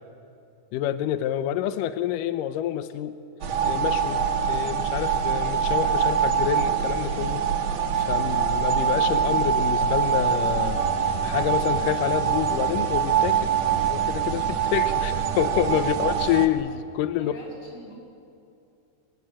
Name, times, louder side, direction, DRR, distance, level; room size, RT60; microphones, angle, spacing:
voice 1, 0.7-3.2 3.6-4.2 4.5-7.5 7.9-17.3, left 11 dB, 85° left, 11 dB, 1.9 m, -28 dB
sound 1, 3.4-16.5, right 7 dB, 55° right, 2.1 m, -24 dB
voice 2, 17.2-17.9, equal, 30° left, -2 dB, 8.5 m, -45 dB
26.0 x 21.5 x 9.0 m, 2.6 s
omnidirectional pair, 4.8 m